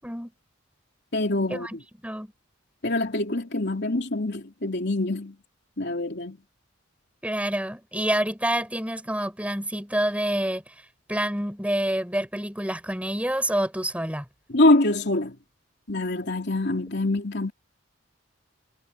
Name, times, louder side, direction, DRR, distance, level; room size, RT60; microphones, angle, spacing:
voice 1, 1.1-1.8 2.8-5.4 5.8-6.4 14.5-15.4 15.9-17.5, left 2 dB, 55° left, 3.2 m, -24 dB
voice 2, 7.2-10.7 11.1-14.3, right 1 dB, 5° right, 5.2 m, -27 dB
head